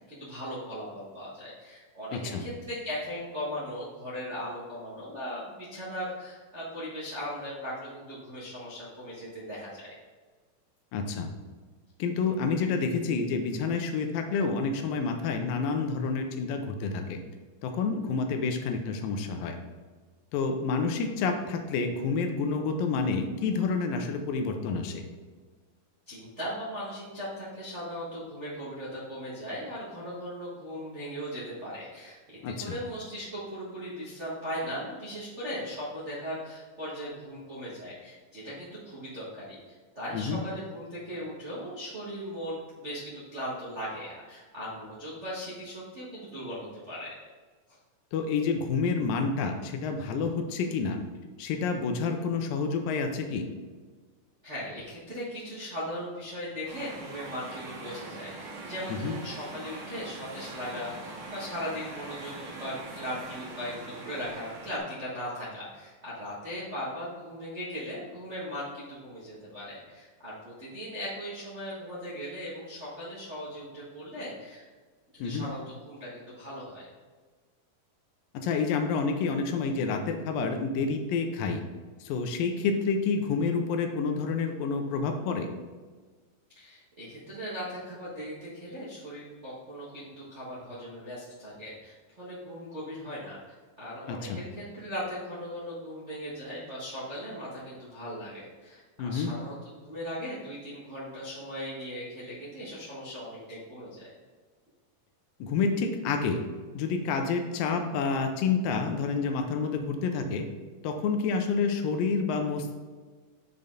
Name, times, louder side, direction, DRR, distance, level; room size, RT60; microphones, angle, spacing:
voice 1, 0.1-9.9 26.1-39.5 39.9-47.1 47.7-47.8 54.4-74.6 75.1-76.8 86.5-93.4 93.8-99.5 99.8-104.1, equal, 45° right, -9 dB, 0.8 m, -38 dB
voice 2, 2.1-2.4 10.9-11.3 12.0-17.2 17.6-19.6 20.3-25.0 32.4-32.8 40.1-40.4 48.1-51.0 51.4-53.5 59.0-59.2 75.2-75.4 78.3-81.6 82.0-85.5 94.1-94.4 99.0-99.3 105.4-106.4 106.7-110.5 110.8-112.8, left 4 dB, 85° left, 5 dB, 2.4 m, -29 dB
sound 1, 56.7-64.8, right 3 dB, 70° right, 3.0 m, -42 dB
6.8 x 5.3 x 3.9 m, 1.4 s
omnidirectional pair, 4.0 m